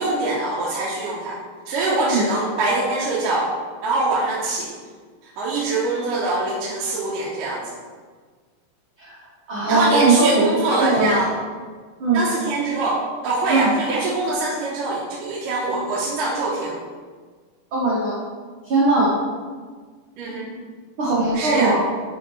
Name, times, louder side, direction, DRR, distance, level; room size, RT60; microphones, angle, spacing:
voice 1, 0.0-1.4 1.7-3.5 3.8-4.7 5.2-7.7 9.7-11.3 12.1-13.0 13.2-16.8 20.2-20.4 21.3-21.7, right 2 dB, 75° right, -5 dB, 2.4 m, -23 dB
voice 2, 9.5-10.5 10.8-11.1 12.0-12.3 13.5-13.6 17.7-18.2 18.6-19.2 21.0-21.8, right 3 dB, 55° right, -7 dB, 1.5 m, -19 dB
10.0 x 5.1 x 3.2 m, 1.5 s
omnidirectional pair, 4.1 m